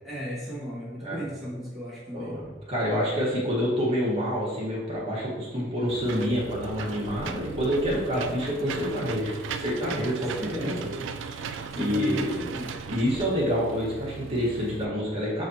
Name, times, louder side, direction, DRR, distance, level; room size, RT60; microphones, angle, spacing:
voice 1, 0.0-2.4 10.2-11.1 11.7-12.7, equal, ahead, -9 dB, 1.0 m, -36 dB
voice 2, 2.1-10.9 11.2-12.4 12.9-15.5, equal, 30° right, -5 dB, 1.2 m, -28 dB
Engine / Mechanisms, 5.9-14.8, right 6 dB, 80° right, 0.3 m, -38 dB
5.8 x 3.3 x 2.7 m, 1.3 s
head